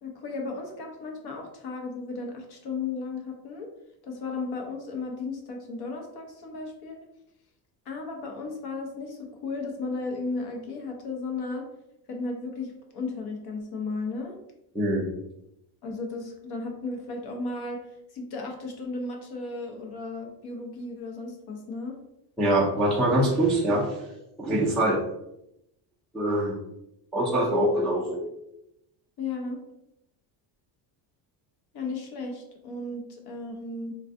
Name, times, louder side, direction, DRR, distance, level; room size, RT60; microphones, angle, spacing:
voice 1, 0.0-3.7 4.0-7.0 7.9-11.7 12.1-14.4 15.8-17.8 18.1-22.0 29.2-29.6 31.7-33.9, left 3 dB, 50° left, 2 dB, 0.8 m, -35 dB
voice 2, 22.4-23.9 24.4-25.0 26.1-26.5 27.1-28.2, right 1 dB, ahead, -6 dB, 0.3 m, -23 dB
3.4 x 2.3 x 2.5 m, 0.83 s
cardioid pair, 125°, 49 cm